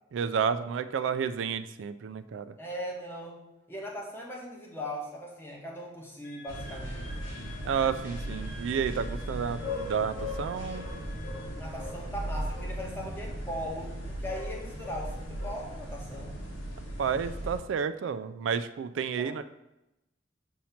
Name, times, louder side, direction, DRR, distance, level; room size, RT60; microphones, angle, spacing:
voice 1, 0.1-2.5 7.6-10.8 17.0-19.4, right 6 dB, 80° right, 11 dB, 0.3 m, -31 dB
voice 2, 2.6-3.4 3.7-7.0 11.6-16.4 19.2-19.4, equal, 10° left, -2 dB, 1.1 m, -39 dB
Wind instrument woodwind instrument, 6.2-11.5, left 2 dB, 35° left, 1.2 m, -51 dB
sound 1, 6.5-17.6, equal, 90° left, 1.4 m, -37 dB
6.3 x 2.8 x 5.7 m, 0.91 s
head